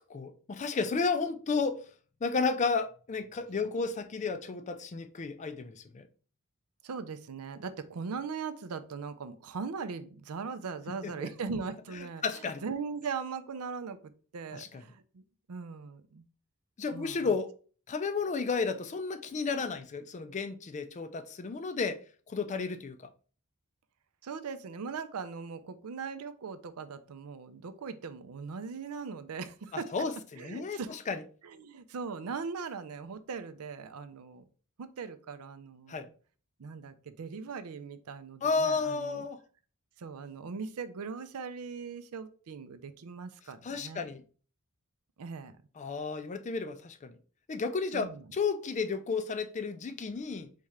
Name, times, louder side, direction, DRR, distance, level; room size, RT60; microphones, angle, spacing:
voice 1, 0.0-1.9 2.2-6.1 11.0-11.3 12.2-12.6 14.5-14.7 16.8-17.5 17.9-23.1 29.7-31.2 35.9-36.1 38.4-39.4 43.6-44.2 45.8-47.2 47.5-50.5, left 4 dB, 30° left, 0.4 m, -32 dB
voice 2, 6.8-15.2 15.5-16.2 16.9-17.3 24.2-29.9 30.4-31.0 31.4-34.4 34.8-36.1 36.6-39.2 40.0-44.0 45.2-45.6 47.9-48.2, right 5 dB, 75° right, 0.5 m, -40 dB
4.2 x 3.6 x 3.2 m
head